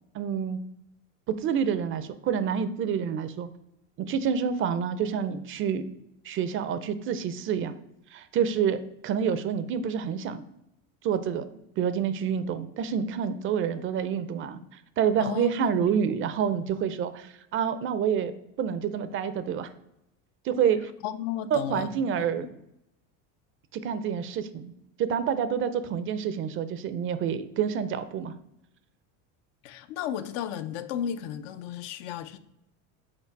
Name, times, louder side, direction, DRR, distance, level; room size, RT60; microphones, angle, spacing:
voice 1, 0.1-0.6 1.3-3.5 4.0-5.8 6.2-7.7 8.1-10.5 11.0-11.4 11.8-19.7 20.4-20.9 21.5-22.5 23.7-24.7 25.0-28.3, right 7 dB, 35° right, 0.4 m, -28 dB
voice 2, 15.2-15.9 21.0-21.9 22.2-22.5 29.6-32.4, left 9 dB, 80° left, 0.6 m, -33 dB
5.8 x 4.4 x 4.5 m
cardioid pair, 135°, 37 cm